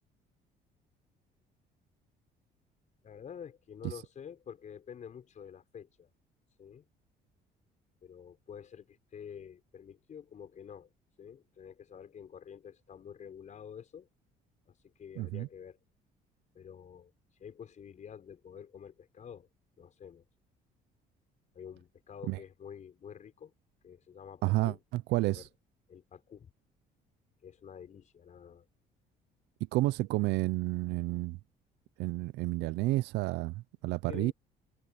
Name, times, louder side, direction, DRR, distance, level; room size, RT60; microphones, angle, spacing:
voice 1, 3.0-6.1 6.6-6.8 8.0-10.9 11.2-14.1 14.7-15.8 16.5-17.1 17.4-19.5 19.8-20.3 21.5-23.5 23.8-24.8 25.2-25.4 25.9-26.5 27.4-28.7 34.1-34.3, left 8 dB, 45° left, 5.8 m, -48 dB
voice 2, 15.2-15.5 22.3-22.4 24.4-25.4 29.7-31.4 32.0-34.3, right 19 dB, 85° right, 0.6 m, -30 dB
cardioid pair, 110°, 17 cm